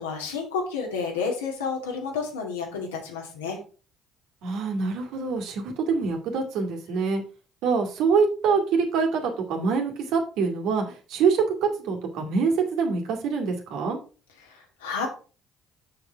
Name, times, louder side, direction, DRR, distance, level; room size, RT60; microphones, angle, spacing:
voice 1, 0.0-3.6 14.4-15.1, left 5 dB, 85° left, 1 dB, 2.3 m, -30 dB
voice 2, 4.4-7.2 7.6-14.0, right 5 dB, 65° right, 3 dB, 2.1 m, -25 dB
7.0 x 6.5 x 4.5 m, 0.37 s
hypercardioid pair, 55°, 0 cm